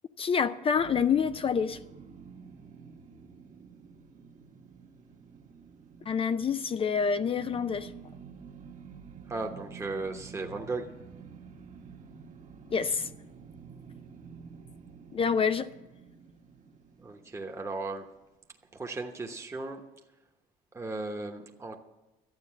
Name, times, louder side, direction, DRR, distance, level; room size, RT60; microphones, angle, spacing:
voice 1, 0.2-1.8 6.1-7.9 12.7-13.1 15.1-15.7, left 6 dB, 35° left, 0.5 m, -27 dB
sound 1, 0.8-18.0, right 5 dB, 50° right, 1.4 m, -50 dB
voice 2, 9.3-10.9 17.0-18.1 18.7-19.8 20.7-21.8, right 3 dB, 15° right, 1.1 m, -36 dB
12.5 x 8.8 x 7.4 m
cardioid pair, 110°, 17 cm